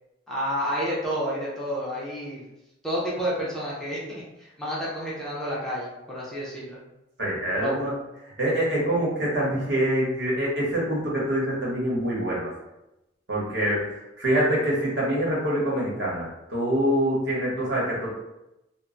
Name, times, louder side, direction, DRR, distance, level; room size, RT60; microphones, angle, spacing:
voice 1, 0.3-2.4 2.8-6.8 7.6-7.8, equal, 5° left, -7 dB, 0.5 m, -30 dB
voice 2, 7.2-7.9 8.4-12.5 13.3-18.1, right 1 dB, 65° right, -6 dB, 1.0 m, -25 dB
2.1 x 2.1 x 3.7 m, 0.93 s
head